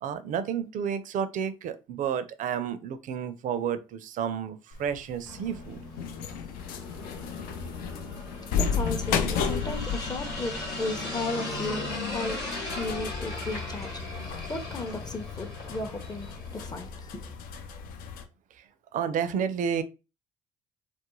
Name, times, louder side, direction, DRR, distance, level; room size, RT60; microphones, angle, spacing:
voice 1, 0.0-5.8 18.6-18.7 18.9-19.8, right 8 dB, 55° right, 0.4 m, -31 dB
sound 1, 4.7-18.2, left 6 dB, 70° left, 0.4 m, -34 dB
sound 2, 5.3-16.8, left 2 dB, 90° left, 0.9 m, -38 dB
sound 3, 6.8-15.9, left 1 dB, 40° left, 1.0 m, -50 dB
voice 2, 8.3-17.3, left 2 dB, 25° left, 0.6 m, -35 dB
2.4 x 2.1 x 2.9 m
hypercardioid pair, 60°, 16 cm